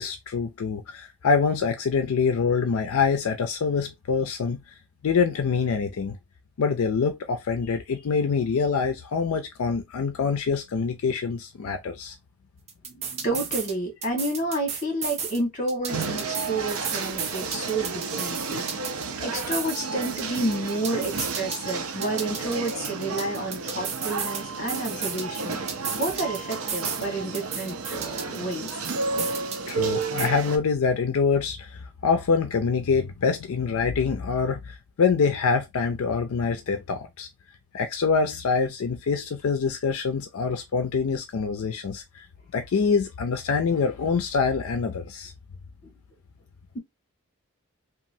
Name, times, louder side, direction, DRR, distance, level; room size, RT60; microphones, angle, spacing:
voice 1, 0.0-4.7 5.0-6.2 6.6-12.2 29.7-37.3 37.7-42.3 42.5-45.3, left 5 dB, 80° left, 0.4 m, -25 dB
sound 1, 12.7-13.7 14.0-15.4 15.7-19.1 19.3-21.7 22.0-24.4 24.7-27.1 27.3-29.7 30.0-30.3, right 6 dB, 30° right, 0.5 m, -33 dB
voice 2, 12.8-18.6 19.2-25.6 25.9-28.7 45.8-45.9, right 1 dB, 35° left, 1.4 m, -30 dB
sound 2, 15.9-30.6, right 4 dB, 75° right, 0.6 m, -32 dB
3.0 x 2.4 x 2.6 m
head